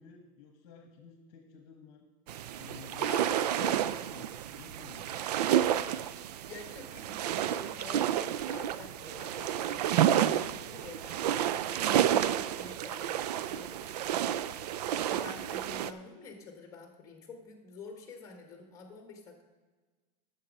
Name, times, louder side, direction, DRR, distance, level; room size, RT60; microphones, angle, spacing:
voice 1, 0.0-2.0 2.6-3.5 3.8-5.7, left 6 dB, 45° left, 5 dB, 1.2 m, -53 dB
sound 1, 2.3-15.9, right 11 dB, 70° right, 0.5 m, -30 dB
voice 2, 3.0-3.9 6.5-14.4 15.0-19.4, left 4 dB, 15° left, 4 dB, 1.6 m, -48 dB
10.5 x 7.4 x 5.3 m, 1.4 s
supercardioid pair, 150°, 21 cm